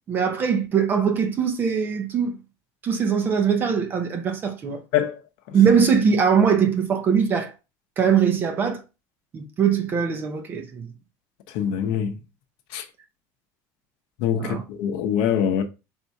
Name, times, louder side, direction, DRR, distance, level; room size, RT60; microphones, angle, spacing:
voice 1, 0.1-2.4 2.8-4.8 5.5-7.5 8.0-8.8 9.3-10.9 14.4-14.6, right 7 dB, 25° right, 0.7 m, -21 dB
voice 2, 11.5-12.1 12.7-12.8 14.2-15.6, left 9 dB, 65° left, 0.8 m, -23 dB
4.2 x 2.7 x 4.6 m
cardioid pair, 175°, 8 cm